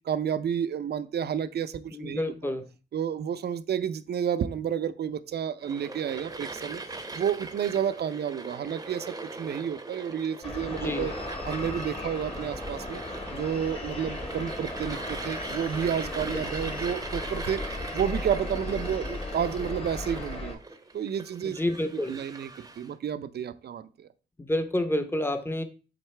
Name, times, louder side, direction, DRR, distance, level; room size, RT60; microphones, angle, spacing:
voice 1, 0.1-2.2 2.9-6.8 7.2-11.1 11.5-13.0 13.3-20.6 20.9-21.6 21.9-24.1, right 8 dB, 60° right, 0.5 m, -31 dB
voice 2, 1.9-2.6 10.7-11.1 16.3-16.4 21.4-22.2 24.4-25.6, left 1 dB, 10° left, 0.8 m, -29 dB
sound 1, 5.6-22.9, right 3 dB, 20° right, 0.7 m, -41 dB
sound 2, 10.4-20.6, left 2 dB, 30° left, 1.4 m, -36 dB
7.8 x 4.0 x 3.3 m
cardioid pair, 100°, 19 cm